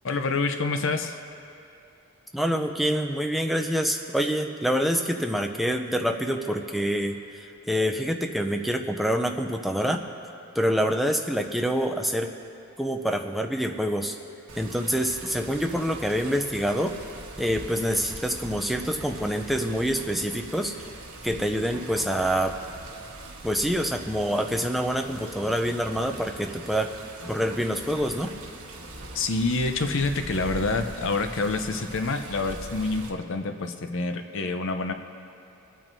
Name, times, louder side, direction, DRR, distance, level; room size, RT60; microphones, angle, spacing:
voice 1, 0.0-1.2 29.1-34.9, left 3 dB, 55° left, 7 dB, 0.7 m, -27 dB
voice 2, 2.3-10.0 10.5-12.3 12.8-14.2 14.6-17.0 17.4-20.7 21.2-22.6 23.4-26.9 27.3-28.3, equal, ahead, 4 dB, 0.5 m, -26 dB
Water, 14.5-33.1, right 2 dB, 80° right, 1.3 m, -42 dB
24.5 x 9.0 x 2.7 m, 2.6 s
head